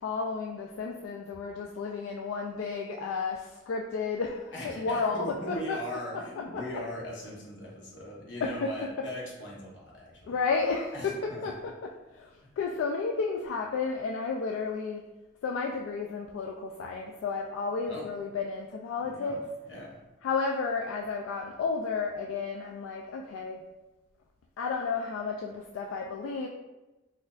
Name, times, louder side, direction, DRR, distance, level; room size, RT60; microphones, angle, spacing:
voice 1, 0.0-5.8 6.5-6.6 8.4-8.9 10.3-11.7 12.1-15.0 15.4-19.4 20.2-23.6 24.6-26.5, left 4 dB, 80° left, 1 dB, 0.3 m, -32 dB
voice 2, 4.5-10.4 10.9-11.5 17.9-18.1 19.0-19.4 19.7-20.0, left 1 dB, 60° left, -4 dB, 0.9 m, -39 dB
4.2 x 2.5 x 2.3 m, 1.1 s
head